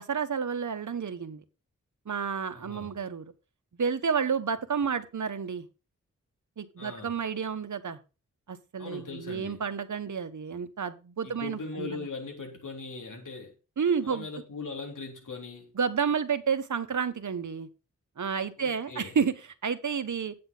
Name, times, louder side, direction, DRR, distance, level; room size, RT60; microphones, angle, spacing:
voice 1, 0.0-1.4 2.1-3.3 3.8-5.7 6.6-8.0 8.5-11.9 13.8-14.3 15.7-17.7 18.2-19.3 19.6-20.3, right 6 dB, 70° right, 1.1 m, -30 dB
voice 2, 2.5-3.0 6.8-7.1 8.8-9.6 11.2-13.5 14.0-15.7 18.6-19.2, left 3 dB, 75° left, 3.7 m, -40 dB
8.7 x 7.8 x 3.9 m
cardioid pair, 45°, 31 cm